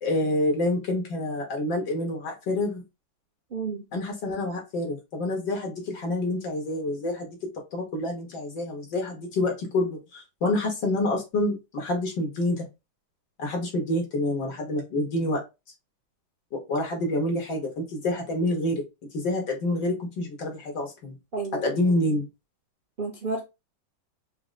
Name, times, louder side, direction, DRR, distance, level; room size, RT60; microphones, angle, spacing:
voice 1, 0.0-2.8 3.9-7.4 7.7-12.7 13.4-15.4 16.5-18.8 19.1-21.2 21.6-22.3, left 1 dB, 65° left, 2.1 m, -27 dB
voice 2, 3.5-3.8 21.3-21.6 23.0-23.4, right 3 dB, 75° right, 0.4 m, -31 dB
4.9 x 2.1 x 3.8 m
omnidirectional pair, 2.2 m